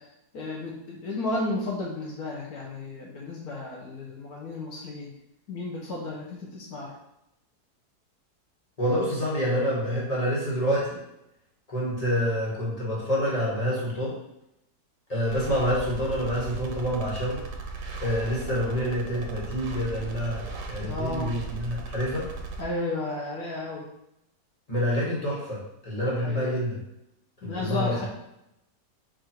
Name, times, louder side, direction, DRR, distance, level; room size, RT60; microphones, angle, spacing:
voice 1, 0.0-5.1 5.5-6.9 20.8-21.3 22.6-23.8 26.2-26.6 27.4-28.1, left 2 dB, 70° left, -3 dB, 1.3 m, -33 dB
voice 2, 8.8-11.0 11.7-14.1 15.1-17.4 18.0-20.4 20.7-22.3 24.7-26.8 27.4-28.1, equal, 25° left, -6 dB, 1.4 m, -27 dB
sound 1, 15.3-22.6, right 3 dB, 90° right, 1.3 m, -37 dB
4.7 x 2.6 x 4.4 m, 0.83 s
omnidirectional pair, 1.7 m